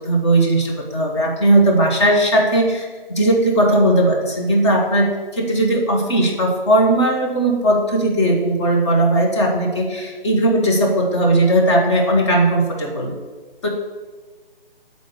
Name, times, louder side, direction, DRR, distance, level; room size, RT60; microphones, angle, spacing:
voice 1, 0.0-13.1 13.6-13.7, right 1 dB, 30° left, -1 dB, 0.9 m, -17 dB
6.4 x 4.1 x 6.1 m, 1.4 s
figure-of-eight pair, 145°, 29 cm